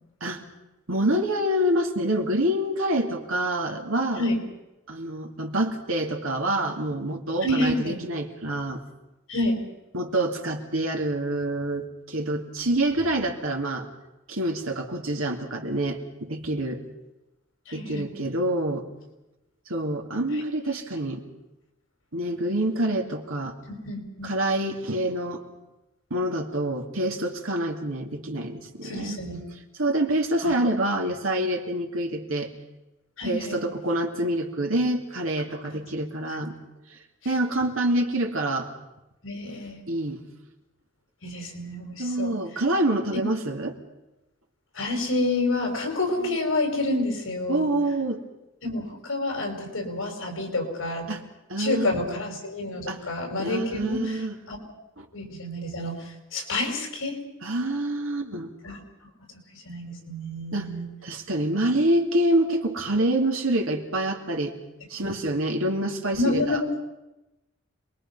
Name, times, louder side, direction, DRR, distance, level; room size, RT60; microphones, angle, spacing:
voice 1, 0.9-4.2 4.9-8.8 9.9-13.9 14.3-16.8 17.7-18.9 19.7-21.2 22.1-23.6 24.2-25.4 26.1-29.2 29.8-32.5 33.2-36.6 37.2-38.7 39.9-40.2 42.0-43.8 47.5-48.2 51.1-51.2 51.5-52.0 52.9-53.0 53.4-54.4 55.0-55.1 57.4-58.5 60.5-60.7 61.0-64.5 64.9-66.6, right 1 dB, 80° right, 3 dB, 2.7 m, -26 dB
voice 2, 7.4-8.0 9.3-9.6 17.7-18.1 20.3-20.4 23.7-24.3 28.8-29.5 30.4-30.6 33.2-33.6 35.5-35.6 37.3-37.4 39.2-39.8 41.2-42.3 44.7-47.7 48.6-51.1 51.6-54.6 55.1-57.2 58.6-58.8 59.5-60.9 65.0-65.1 66.1-66.8, left 2 dB, 75° left, 3 dB, 5.1 m, -29 dB
27.0 x 21.5 x 5.6 m, 0.97 s
head